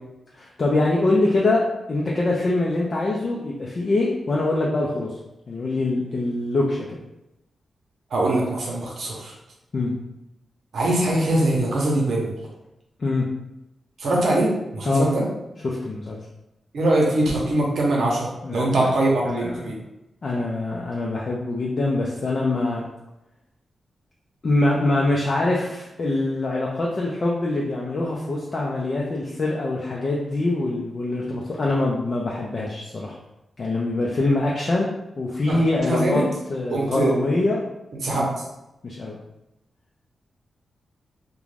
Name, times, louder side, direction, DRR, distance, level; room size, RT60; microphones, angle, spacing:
voice 1, 0.4-1.6 1.9-5.1 5.5-7.0 9.7-9.9 13.0-13.3 14.9-15.1 15.6-16.2 18.4-18.9 19.2-19.6 20.2-22.8 24.4-33.2 33.6-34.9 35.2-36.2 36.5-37.6 38.1-38.3 38.8-39.2, left 2 dB, 45° left, -3 dB, 0.4 m, -24 dB
voice 2, 8.1-9.3 10.7-12.3 14.0-15.2 16.7-19.7 35.5-36.2 36.7-37.1 38.0-38.3, right 1 dB, 80° right, -2 dB, 0.7 m, -22 dB
2.5 x 2.2 x 3.2 m, 0.91 s
wide cardioid pair, 100°, 0 cm